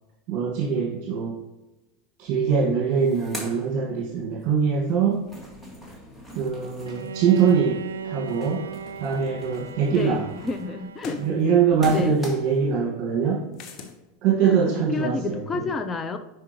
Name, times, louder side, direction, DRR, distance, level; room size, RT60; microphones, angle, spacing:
voice 1, 0.3-1.4 2.2-5.2 6.3-7.8 8.0-8.6 9.0-10.2 11.2-13.4 14.2-15.4, right 6 dB, 45° right, -3 dB, 1.8 m, -23 dB
sound 1, 2.3-2.4 2.7-4.5 4.8-12.7, left 1 dB, 5° left, 2.1 m, -41 dB
Bowed string instrument, 6.8-11.8, right 5 dB, 90° right, 0.3 m, -38 dB
voice 2, 9.9-11.2 11.9-12.2 14.4-16.2, left 4 dB, 25° left, 8 dB, 0.7 m, -30 dB
sound 2, 11.0-11.3 13.5-14.0, left 5 dB, 45° left, 1.2 m, -40 dB
10.5 x 4.9 x 3.1 m, 1.1 s
hypercardioid pair, 95°, 0 cm